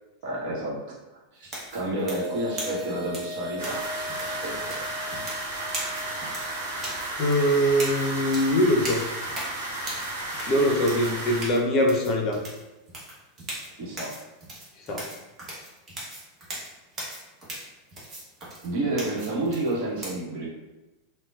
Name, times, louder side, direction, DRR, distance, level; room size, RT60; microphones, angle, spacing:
voice 1, 0.2-0.8 1.3-4.8 13.8-14.1 18.6-20.5, right 2 dB, 50° right, -5 dB, 1.0 m, -30 dB
sound 1, 1.4-20.1, right 1 dB, 25° right, 1.0 m, -39 dB
sound 2, 1.7-7.2 7.5-7.6, left 2 dB, 10° right, 0.5 m, -38 dB
sound 3, 3.6-11.4, right 1 dB, 75° right, 1.1 m, -33 dB
voice 2, 7.2-9.0 10.5-12.4 14.9-15.0, equal, 40° left, 0 dB, 0.6 m, -22 dB
3.7 x 2.1 x 2.3 m, 1.1 s
figure-of-eight pair, 90°, 0 cm